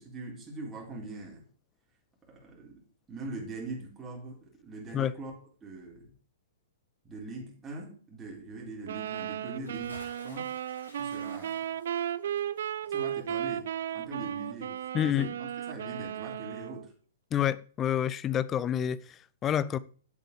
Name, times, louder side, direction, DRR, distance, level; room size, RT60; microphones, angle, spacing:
voice 1, 0.0-1.4 2.2-2.8 3.1-5.3 5.6-6.1 7.0-10.0 10.2-10.5 11.0-11.7 12.9-16.9, right 2 dB, 15° right, 4.1 m, -42 dB
sound 1, 8.9-16.9, right 10 dB, 60° right, 0.6 m, -35 dB
Bathtub (filling or washing) / Splash splatter, 9.5-14.5 14.8-14.9, left 1 dB, 90° left, 6.3 m, -53 dB
voice 2, 14.9-15.3 17.3-19.8, left 10 dB, 20° left, 0.7 m, -28 dB
9.9 x 8.1 x 6.6 m
figure-of-eight pair, 110°, 0 cm